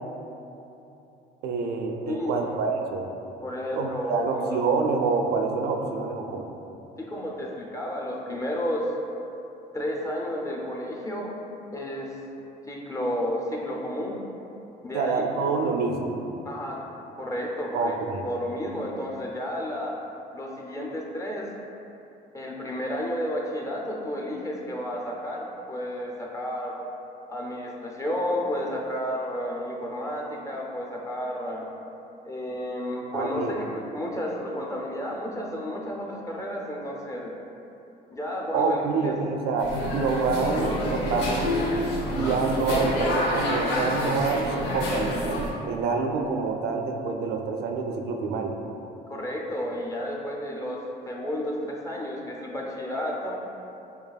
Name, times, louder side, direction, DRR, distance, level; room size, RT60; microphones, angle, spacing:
voice 1, 1.4-3.1 3.7-6.5 14.9-16.2 17.7-18.3 33.1-33.6 38.5-41.6 42.0-48.6, right 4 dB, 80° right, 3 dB, 0.4 m, -27 dB
voice 2, 2.1-2.4 3.4-4.6 7.0-8.9 9.7-11.4 11.7-12.2 12.7-14.2 14.8-15.2 16.4-16.8 17.2-17.9 18.2-19.9 20.3-21.5 22.3-26.8 27.3-31.7 32.2-37.3 38.1-39.1 49.1-53.4, left 1 dB, 20° left, -2 dB, 0.5 m, -32 dB
sound 1, 39.6-45.5, left 1 dB, 90° left, 0.7 m, -28 dB
6.7 x 2.4 x 2.3 m, 2.9 s
cardioid pair, 110°, 17 cm